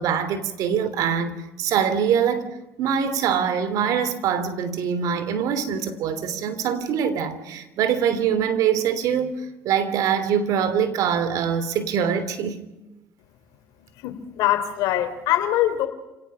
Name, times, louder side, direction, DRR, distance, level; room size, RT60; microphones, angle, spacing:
voice 1, 0.0-2.5 2.8-12.6, right 8 dB, 65° right, 3.0 m, -24 dB
voice 2, 14.0-15.9, left 13 dB, 75° left, 3.4 m, -23 dB
29.0 x 18.0 x 5.7 m
supercardioid pair, 85°, 6 cm